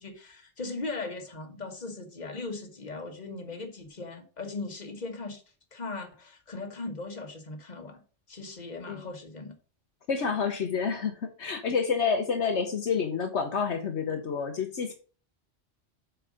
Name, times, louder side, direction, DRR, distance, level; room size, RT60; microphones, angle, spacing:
voice 1, 0.0-5.4 5.7-8.0 8.3-9.6, left 3 dB, 35° left, 4 dB, 1.6 m, -38 dB
voice 2, 10.1-14.9, left 6 dB, 70° left, 5 dB, 1.2 m, -29 dB
7.8 x 4.6 x 5.1 m, 0.38 s
omnidirectional pair, 1.2 m